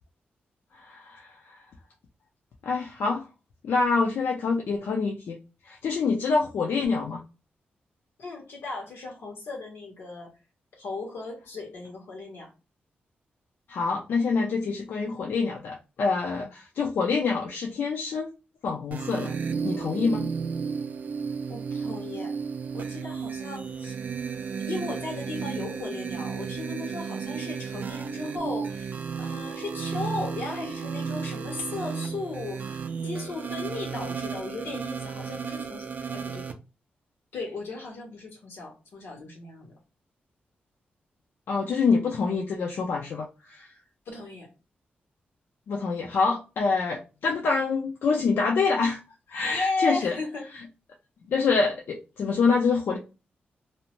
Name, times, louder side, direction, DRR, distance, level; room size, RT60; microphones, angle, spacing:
voice 1, 0.8-1.5 2.6-3.3 3.6-5.4 5.7-7.2 13.7-18.3 18.6-19.3 19.6-20.3 41.5-43.7 45.7-49.0 49.3-50.2 51.3-53.0, left 4 dB, 70° left, 0 dB, 0.5 m, -26 dB
voice 2, 8.2-10.3 10.8-12.5 21.5-22.3 22.7-24.0 24.6-28.9 29.2-36.5 37.3-39.7 44.1-44.5 49.5-50.4, left 3 dB, 90° left, 0 dB, 1.1 m, -36 dB
sound 1, 18.9-36.5, right 6 dB, 50° right, 0.4 m, -33 dB
2.7 x 2.1 x 2.9 m, 0.30 s
wide cardioid pair, 145°, 4 cm